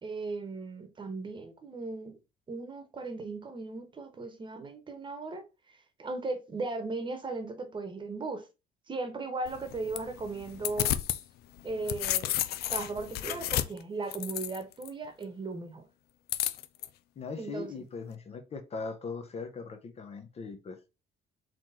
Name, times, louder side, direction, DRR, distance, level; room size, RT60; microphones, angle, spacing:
voice 1, 0.0-2.2 2.5-8.4 8.9-10.9 11.6-12.3 12.7-15.9 17.4-17.8, right 3 dB, 30° right, 1.1 m, -37 dB
sound 1, 9.5-11.2 11.6-14.9 16.3-16.9, left 13 dB, 70° left, 0.5 m, -32 dB
voice 2, 17.2-20.8, left 4 dB, 35° left, 0.7 m, -40 dB
4.1 x 3.1 x 4.1 m
cardioid pair, 110°, 17 cm